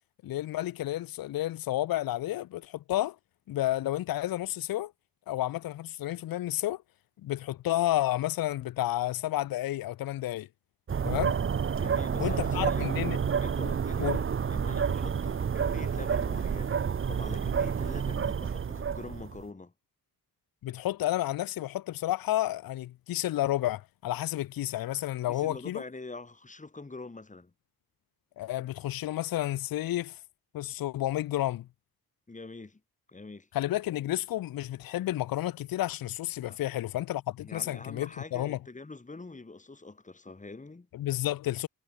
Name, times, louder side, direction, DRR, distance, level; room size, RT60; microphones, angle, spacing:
voice 1, 0.2-3.2 3.5-4.9 5.3-6.8 7.2-10.5 11.0-11.4 12.2-13.2 14.0-14.2 20.6-25.8 28.4-30.2 30.5-31.7 33.5-38.6 40.9-41.7, left 14 dB, 65° left, 0.5 m, -31 dB
sound 1, 10.9-19.4, right 7 dB, 35° right, 0.6 m, -29 dB
voice 2, 11.7-12.9 13.4-14.1 14.5-16.8 17.1-19.7 25.3-27.5 32.3-32.8 33.1-33.5 36.5-36.6 37.4-40.9, left 3 dB, 20° left, 1.6 m, -44 dB
wide cardioid pair, 125°, 39 cm